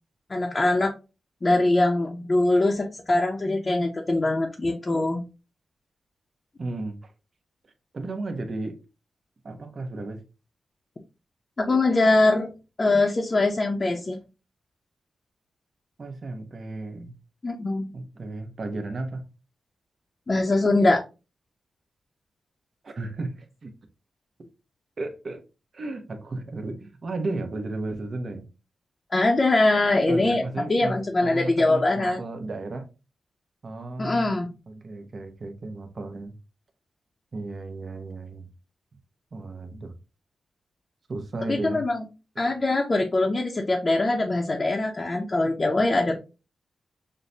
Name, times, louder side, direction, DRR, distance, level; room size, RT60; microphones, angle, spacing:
voice 1, 0.3-0.9 1.4-5.2 11.6-12.5 12.8-14.2 17.4-17.9 20.3-21.0 29.1-30.4 30.7-32.2 34.0-34.5 41.5-42.0 42.4-46.2, left 2 dB, 35° left, 0.6 m, -22 dB
voice 2, 6.6-7.1 7.9-8.8 9.4-10.2 16.0-17.1 17.9-19.2 22.8-23.7 25.0-25.4 25.7-28.5 30.1-32.9 33.6-34.4 34.7-36.3 37.3-38.5 39.3-39.9 41.1-41.8 42.3-42.6, right 2 dB, 50° right, 0.8 m, -34 dB
6.3 x 2.2 x 2.6 m
cardioid pair, 75°, 0 cm